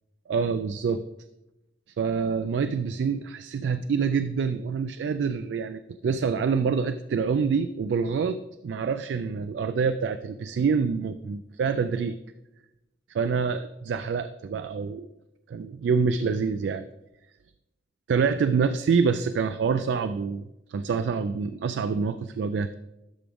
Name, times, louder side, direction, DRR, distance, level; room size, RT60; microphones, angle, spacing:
voice 1, 0.3-1.0 2.0-8.4 8.6-12.2 13.1-15.1 15.5-16.9 18.1-22.7, right 5 dB, 80° right, 11 dB, 0.3 m, -26 dB
12.5 x 4.9 x 3.5 m, 0.96 s
head